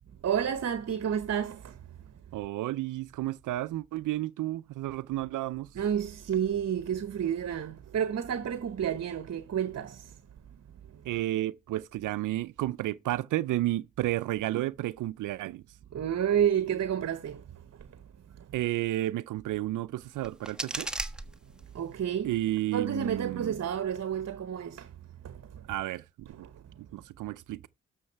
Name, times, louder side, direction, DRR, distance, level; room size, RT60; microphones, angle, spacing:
voice 1, 0.2-1.8 5.7-10.2 10.9-11.0 15.9-18.0 18.3-18.5 21.7-22.3 22.7-25.0 25.2-25.7 26.4-26.6, right 9 dB, 55° right, 1.0 m, -30 dB
voice 2, 2.3-5.8 11.0-15.6 18.5-20.9 22.2-23.6 25.7-26.5 26.9-27.7, right 15 dB, 75° right, 0.5 m, -32 dB
sound 1, 20.0-22.0, right 1 dB, 5° right, 1.2 m, -38 dB
12.5 x 6.3 x 4.5 m
supercardioid pair, 50°, 31 cm